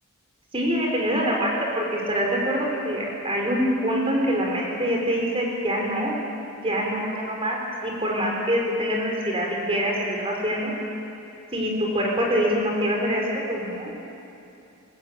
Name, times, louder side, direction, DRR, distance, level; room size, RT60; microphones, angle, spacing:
voice 1, 0.5-6.2 6.6-10.7 11.5-14.0, equal, 25° right, -1 dB, 4.8 m, -25 dB
22.0 x 19.0 x 9.0 m, 2.8 s
head